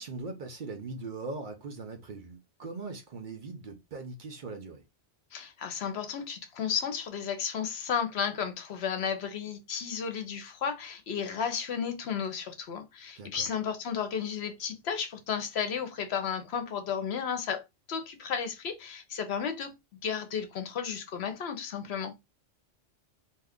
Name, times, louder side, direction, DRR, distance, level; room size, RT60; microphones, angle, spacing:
voice 1, 0.0-4.8 13.2-13.5, right 3 dB, 55° right, 0.7 m, -40 dB
voice 2, 5.3-17.6 17.9-19.7 20.0-22.1, left 7 dB, 70° left, 0.9 m, -33 dB
2.7 x 2.3 x 3.4 m
omnidirectional pair, 1.1 m